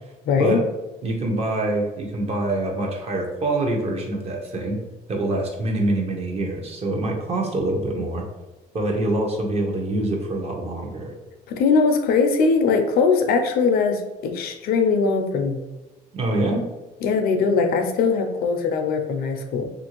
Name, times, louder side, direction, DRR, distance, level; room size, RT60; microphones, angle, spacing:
voice 1, 0.3-0.6 11.5-15.6 17.0-19.7, left 4 dB, 65° left, 5 dB, 0.4 m, -21 dB
voice 2, 1.0-4.8 5.1-8.2 8.7-11.1 16.1-16.6, right 2 dB, 35° right, 1 dB, 0.7 m, -25 dB
2.8 x 2.5 x 2.9 m, 1.1 s
cardioid pair, 110°, 17 cm